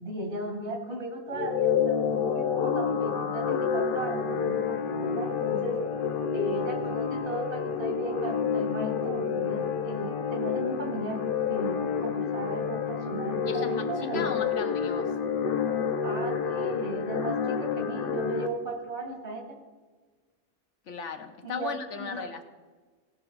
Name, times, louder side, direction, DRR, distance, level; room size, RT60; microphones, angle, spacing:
voice 1, 0.0-5.8 6.3-11.2 11.5-14.4 16.0-19.6 21.4-22.3, right 1 dB, 65° right, 1 dB, 2.6 m, -36 dB
sound 1, 1.3-18.5, left 6 dB, 50° left, 0.9 m, -29 dB
voice 2, 13.5-15.2 20.9-22.4, left 6 dB, 75° left, 6 dB, 1.2 m, -37 dB
17.5 x 6.1 x 4.6 m, 1.4 s
omnidirectional pair, 1.3 m